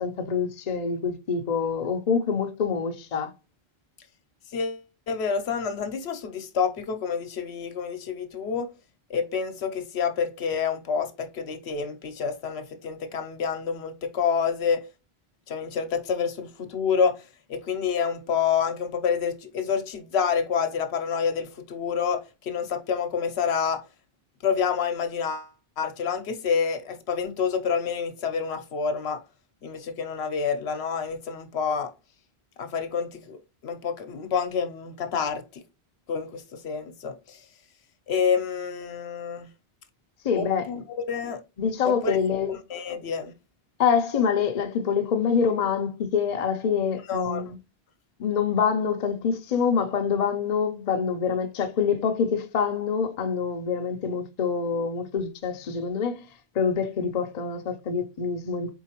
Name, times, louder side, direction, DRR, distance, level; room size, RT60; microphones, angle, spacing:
voice 1, 0.0-3.3 40.2-40.7 41.6-42.5 43.8-47.6 48.2-56.2 56.5-58.7, left 6 dB, 45° left, 0.6 m, -26 dB
voice 2, 4.5-8.7 9.1-14.8 15.5-17.2 17.5-23.8 24.4-25.5 25.8-29.2 29.6-31.9 32.6-35.6 36.1-37.4 38.1-39.5 40.3-40.8 41.1-41.4 41.8-42.2 42.5-43.3 47.1-47.5, left 6 dB, 85° left, 1.0 m, -28 dB
4.5 x 3.8 x 2.9 m
omnidirectional pair, 1.1 m